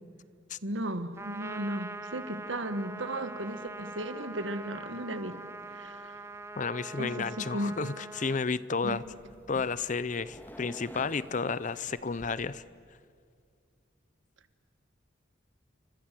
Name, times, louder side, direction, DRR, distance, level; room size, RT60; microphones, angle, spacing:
voice 1, 0.6-5.4 5.7-6.2 7.0-7.7 8.8-9.0, right 1 dB, 75° right, 10 dB, 1.6 m, -35 dB
Trumpet, 1.2-8.4, right 2 dB, 15° right, 0.6 m, -43 dB
voice 2, 6.6-9.0 9.5-12.6, left 4 dB, 40° left, 18 dB, 0.6 m, -32 dB
sound 1, 8.9-12.6, equal, 10° left, 1.6 m, -51 dB
29.5 x 25.0 x 7.6 m, 2.2 s
head